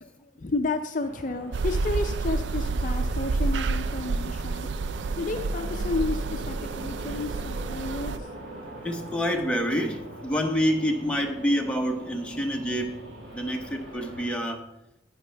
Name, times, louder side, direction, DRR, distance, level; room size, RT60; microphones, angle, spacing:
voice 1, 0.0-4.7 5.2-8.3, left 3 dB, 40° left, 0.5 m, -32 dB
sound 1, 1.0-14.3, right 1 dB, 85° right, 3.1 m, -43 dB
sound 2, 1.5-8.2, right 3 dB, 65° right, 0.3 m, -29 dB
voice 2, 8.8-13.0 13.3-14.7, equal, 5° left, 0.8 m, -27 dB
10.5 x 8.9 x 3.4 m
head